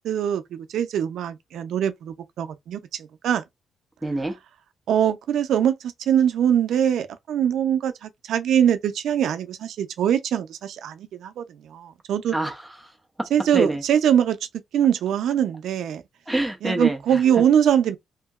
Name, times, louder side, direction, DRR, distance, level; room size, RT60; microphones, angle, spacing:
voice 1, 0.0-2.8 3.2-3.4 4.9-12.3 13.3-14.4 14.7-16.0 16.6-18.0, right 9 dB, 80° right, 0.4 m, -22 dB
voice 2, 4.0-4.4 12.3-13.3 13.5-13.8 16.3-17.4, right 2 dB, 5° right, 0.6 m, -27 dB
2.8 x 2.6 x 2.3 m
cardioid pair, 140°, 0 cm